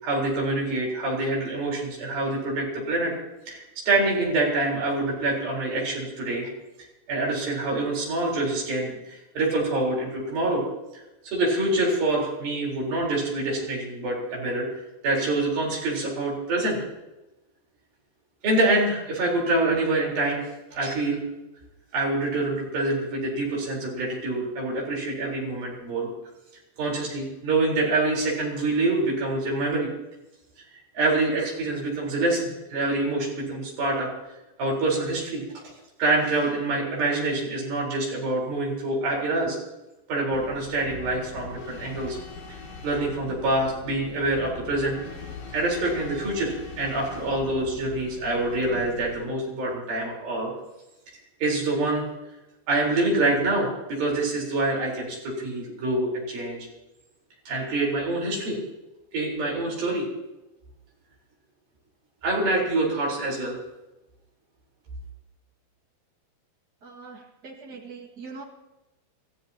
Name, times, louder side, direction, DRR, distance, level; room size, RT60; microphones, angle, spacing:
voice 1, 0.0-3.1 3.5-6.5 7.1-10.6 10.9-14.7 15.0-16.8 18.4-20.4 20.7-21.2 21.9-26.1 26.8-29.9 30.7-34.1 34.6-35.4 36.0-39.6 40.1-42.2 42.8-45.0 45.5-50.5 51.4-52.0 52.7-56.7 57.5-58.6 59.1-60.1 62.2-63.6, right 2 dB, 60° right, -2 dB, 5.8 m, -26 dB
sound 1, 40.3-49.3, left 4 dB, 50° left, 4.6 m, -42 dB
voice 2, 66.8-68.4, right 4 dB, 40° right, 1 dB, 1.4 m, -42 dB
26.5 x 14.5 x 2.9 m, 1.0 s
omnidirectional pair, 4.8 m